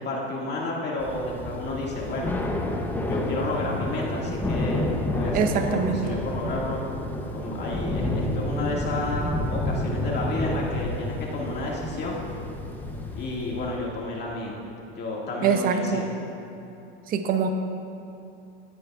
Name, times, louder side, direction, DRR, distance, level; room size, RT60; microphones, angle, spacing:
voice 1, 0.0-2.4 3.0-6.8 7.3-12.2 13.1-14.6 15.0-16.0, left 2 dB, 30° left, -3 dB, 2.1 m, -31 dB
Thunder / Rain, 1.0-13.9, left 1 dB, 5° left, 0.8 m, -30 dB
voice 2, 5.3-6.0 15.4-16.1 17.1-17.5, right 6 dB, 25° right, 7 dB, 0.7 m, -24 dB
19.5 x 9.1 x 2.4 m, 2.7 s
supercardioid pair, 125°, 34 cm